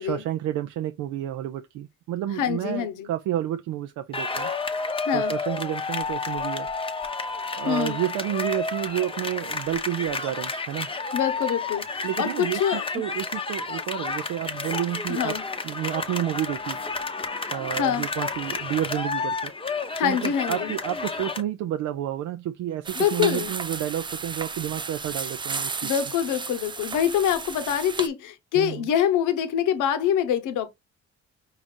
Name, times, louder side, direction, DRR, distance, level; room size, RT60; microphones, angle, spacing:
voice 1, 0.0-6.7 7.5-10.9 12.0-15.4 15.6-16.8 17.2-25.9 28.5-28.9, right 12 dB, 80° right, 0.5 m, -30 dB
voice 2, 2.4-3.1 5.0-5.3 7.7-8.0 11.1-12.8 15.1-15.4 17.8-18.1 19.9-20.7 23.0-23.5 25.8-30.7, left 9 dB, 85° left, 0.9 m, -25 dB
sound 1, 4.1-21.4, left 3 dB, 20° left, 0.7 m, -31 dB
sound 2, 22.8-28.1, right 5 dB, 15° right, 0.3 m, -33 dB
5.6 x 2.4 x 3.6 m
cardioid pair, 90°, 30 cm